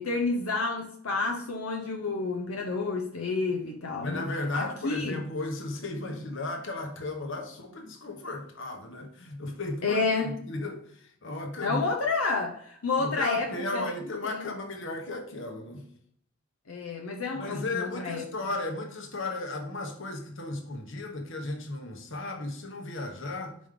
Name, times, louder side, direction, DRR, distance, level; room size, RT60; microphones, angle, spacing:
voice 1, 0.0-4.3 4.5-5.2 9.8-10.3 11.6-13.8 14.2-14.3 16.7-18.2, left 3 dB, 85° left, 0.8 m, -30 dB
voice 2, 4.0-11.8 13.0-15.9 17.3-23.6, left 2 dB, 60° left, 1.2 m, -35 dB
5.3 x 5.1 x 3.7 m
head